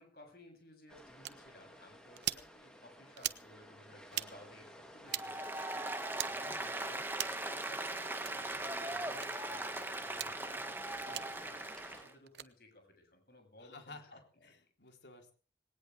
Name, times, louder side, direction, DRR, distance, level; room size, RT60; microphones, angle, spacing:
voice 1, 0.0-6.1 6.6-7.0 7.2-14.5, left 1 dB, 55° left, 4 dB, 7.5 m, -58 dB
sound 1, 0.9-12.0, equal, 5° left, 3.0 m, -55 dB
sound 2, 1.2-1.3 2.2-2.4 3.2-3.4 4.1-4.3 5.1-5.3 6.1-6.3 7.1-7.4 8.2-8.3 9.2-9.3 10.1-10.3 11.1-11.3 12.3-12.5, right 12 dB, 75° right, 0.9 m, -38 dB
Applause, 5.1-12.1, right 2 dB, 10° right, 1.7 m, -39 dB
voice 2, 6.3-7.1 13.6-15.3, left 3 dB, 80° left, 4 dB, 3.7 m, -55 dB
20.0 x 19.0 x 3.5 m, 0.39 s
head